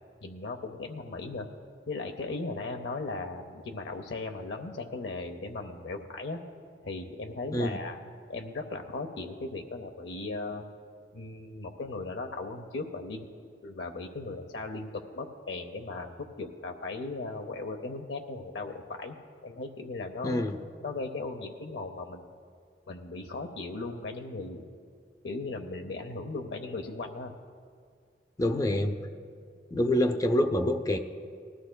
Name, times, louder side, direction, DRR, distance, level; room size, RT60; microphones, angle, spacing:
voice 1, 0.2-1.5 1.9-6.4 6.8-8.0 8.3-10.6 11.1-13.3 13.6-19.2 19.4-20.4 20.8-22.3 22.9-24.7 25.2-27.3, left 3 dB, 85° left, 4 dB, 0.7 m, -37 dB
voice 2, 20.2-20.6 28.4-29.0 29.7-31.0, left 1 dB, 20° left, 6 dB, 0.5 m, -26 dB
19.0 x 14.0 x 2.2 m, 2.1 s
head